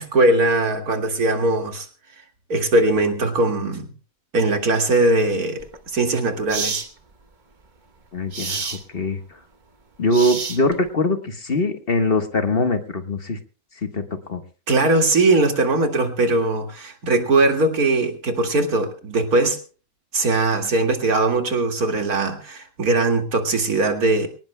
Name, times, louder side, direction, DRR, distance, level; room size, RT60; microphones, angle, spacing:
voice 1, 0.0-1.9 2.5-3.9 4.3-5.6 5.9-6.8 14.7-19.6 20.1-24.3, right 2 dB, 85° right, 4 dB, 2.6 m, -20 dB
sound 1, 5.6-5.8 6.5-6.9 8.3-8.8 10.1-10.9, right 5 dB, 35° right, 1.1 m, -28 dB
voice 2, 8.1-9.4 10.0-13.4 13.8-14.0 14.3-14.4, left 1 dB, 40° left, 7 dB, 1.4 m, -22 dB
24.5 x 18.5 x 2.2 m, 0.37 s
omnidirectional pair, 1.5 m